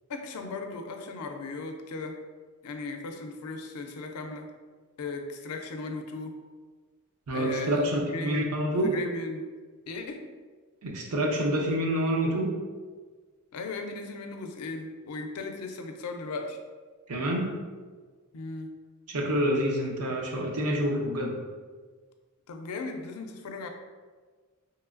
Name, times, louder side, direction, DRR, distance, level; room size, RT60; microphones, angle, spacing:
voice 1, 0.1-2.2 2.6-4.5 5.0-6.4 7.3-9.5 9.9-10.3 13.5-16.6 18.3-18.7 22.5-23.7, left 3 dB, 80° left, 4 dB, 0.4 m, -37 dB
voice 2, 7.3-8.9 10.8-12.5 17.1-17.5 19.1-21.4, equal, 80° right, -1 dB, 0.6 m, -27 dB
3.1 x 3.0 x 2.4 m, 1.4 s
head